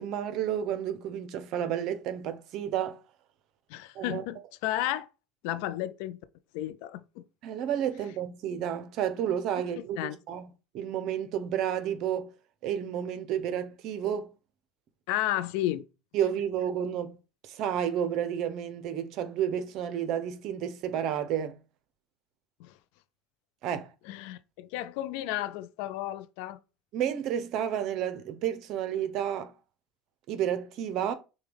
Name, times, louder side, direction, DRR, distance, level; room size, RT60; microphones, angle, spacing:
voice 1, 0.0-3.0 3.9-4.2 7.4-10.5 10.7-12.3 12.6-14.3 16.1-17.2 17.4-21.6 23.6-23.9 26.9-29.5 30.3-31.1, right 9 dB, 60° right, 0.7 m, -31 dB
voice 2, 3.7-5.1 5.4-6.2 6.5-7.2 9.6-10.2 15.1-15.8 22.6-22.7 24.1-26.6, left 14 dB, 75° left, 0.4 m, -33 dB
6.3 x 2.3 x 3.5 m
supercardioid pair, 95°, 0 cm